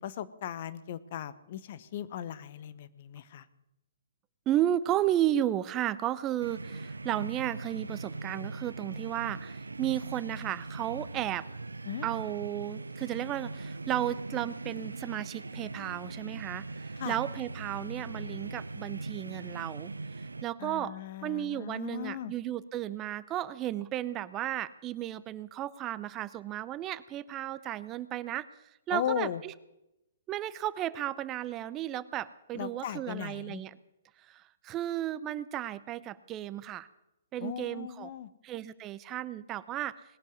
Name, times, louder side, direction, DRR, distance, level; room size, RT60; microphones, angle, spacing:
voice 1, 0.0-3.5 11.9-12.1 17.0-17.2 20.6-22.3 28.9-29.4 32.5-33.6 37.4-38.3, left 10 dB, 50° left, 14 dB, 1.0 m, -37 dB
voice 2, 4.5-11.5 12.0-19.9 20.4-21.0 21.2-28.5 28.9-29.5 30.3-33.8 34.3-36.9 37.3-38.1 38.4-40.0, right 12 dB, 25° right, 16 dB, 0.6 m, -33 dB
sound 1, 6.4-20.4, right 3 dB, 85° right, 0.5 m, -40 dB
19.5 x 7.6 x 9.4 m, 0.90 s
figure-of-eight pair, 125°, 0 cm